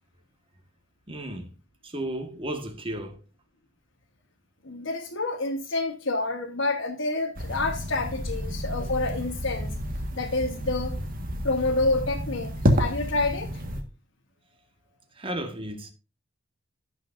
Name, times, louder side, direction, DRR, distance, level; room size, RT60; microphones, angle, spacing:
voice 1, 1.1-1.5 1.8-3.2 15.1-15.9, right 1 dB, 25° right, 1.6 m, -34 dB
voice 2, 4.6-9.8 10.1-11.0 11.4-13.6, left 2 dB, 65° left, 1.3 m, -28 dB
sound 1, 7.3-13.8, equal, 45° right, 1.7 m, -29 dB
17.0 x 6.3 x 2.6 m
head